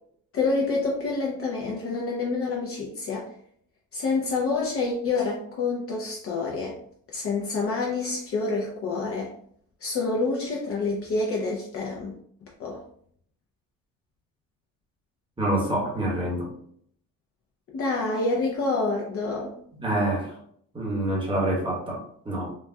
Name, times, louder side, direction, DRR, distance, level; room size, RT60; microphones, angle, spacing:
voice 1, 0.3-3.3 3.9-6.8 7.1-9.3 9.8-12.1 12.6-12.8 17.7-19.5, left 3 dB, 45° left, -3 dB, 0.6 m, -27 dB
voice 2, 15.4-16.5 19.8-20.4 20.7-22.5, right 1 dB, 15° right, -4 dB, 1.1 m, -27 dB
4.1 x 2.2 x 2.2 m, 0.64 s
cardioid pair, 140°, 32 cm